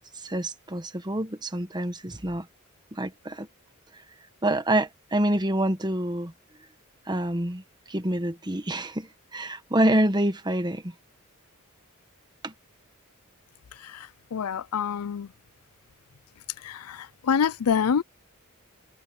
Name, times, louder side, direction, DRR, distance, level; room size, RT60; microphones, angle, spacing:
voice 1, 0.2-2.5 2.9-3.5 4.4-6.3 7.1-10.9 12.4-12.5, right 1 dB, 20° right, 1.3 m, -27 dB
voice 2, 13.7-15.3 16.6-18.0, left 7 dB, 85° left, 0.5 m, -27 dB
head